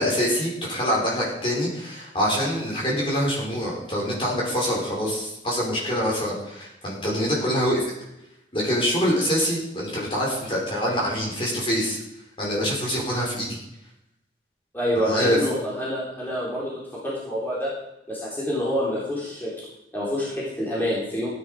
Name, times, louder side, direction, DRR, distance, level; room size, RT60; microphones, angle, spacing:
voice 1, 0.0-7.9 8.5-12.0 12.4-13.6 14.9-15.4, equal, 30° left, -3 dB, 4.7 m, -25 dB
voice 2, 14.7-16.7 17.0-17.7 18.1-19.5 19.9-21.3, equal, 10° left, -7 dB, 3.8 m, -27 dB
16.0 x 10.0 x 5.0 m, 0.88 s
head